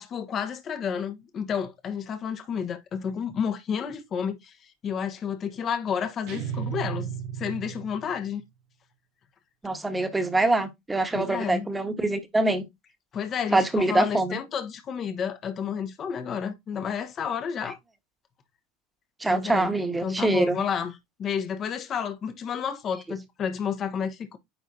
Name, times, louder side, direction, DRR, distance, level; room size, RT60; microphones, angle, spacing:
voice 1, 0.0-4.5 4.8-7.1 7.4-8.4 11.1-11.7 13.1-17.8 19.3-19.7 20.0-20.9 21.2-24.4, left 7 dB, 40° left, 1.2 m, -30 dB
sound 1, 6.3-8.3, right 8 dB, 60° right, 1.0 m, -34 dB
voice 2, 9.6-12.6 13.5-14.4 19.2-20.6, right 2 dB, 15° right, 1.4 m, -24 dB
9.9 x 3.7 x 2.8 m
hypercardioid pair, 80°, 0 cm